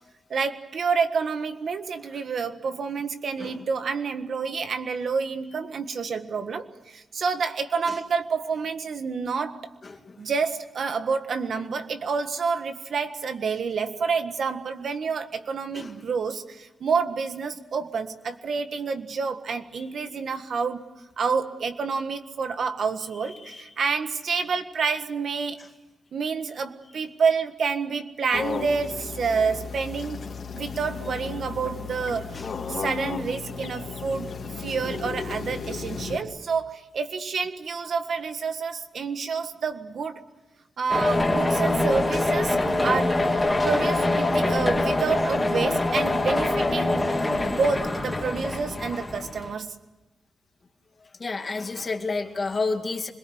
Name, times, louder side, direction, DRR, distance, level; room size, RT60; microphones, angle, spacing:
voice 1, 0.3-9.7 10.2-20.8 21.2-25.6 26.1-30.3 30.5-34.3 34.6-40.2 40.8-42.6 42.8-43.2 43.6-46.9 47.5-49.7, right 5 dB, 55° right, 8 dB, 1.6 m, -28 dB
voice 2, 9.8-10.2 15.7-15.9 23.4-23.6 32.3-32.5 51.2-53.1, left 3 dB, 30° left, 5 dB, 2.2 m, -30 dB
sound 1, 28.3-36.2, left 5 dB, 45° left, 2.7 m, -34 dB
sound 2, 40.9-49.5, left 2 dB, 15° left, 2.7 m, -24 dB
27.0 x 22.0 x 7.9 m, 1.0 s
wide cardioid pair, 170°, 0 cm